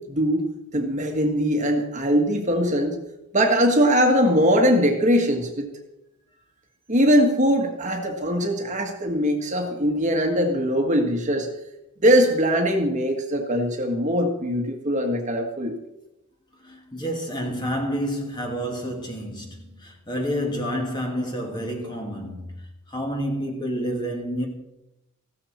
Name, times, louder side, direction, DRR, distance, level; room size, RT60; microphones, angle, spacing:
voice 1, 0.1-0.4 0.7-3.0 3.3-5.7 6.9-11.5 12.0-15.7, equal, 35° right, 1.7 m, -21 dB
voice 2, 16.6-24.5, equal, 20° left, 2.3 m, -29 dB
15.5 x 13.0 x 4.4 m
head